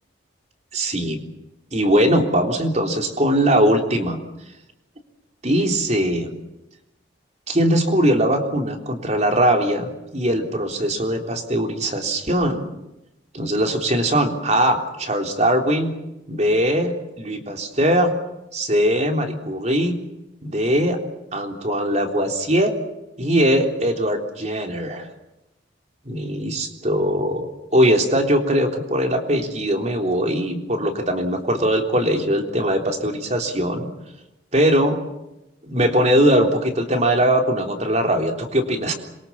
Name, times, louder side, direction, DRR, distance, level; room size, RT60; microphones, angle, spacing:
voice 1, 0.7-1.3 1.7-4.2 5.4-6.4 7.5-12.6 13.3-15.9 16.3-18.1 18.5-20.0 20.4-21.0 21.3-22.7 23.2-25.1 26.0-33.9 34.5-35.0 35.6-38.9, equal, 35° right, 4 dB, 3.6 m, -20 dB
27.0 x 23.5 x 7.3 m, 0.93 s
head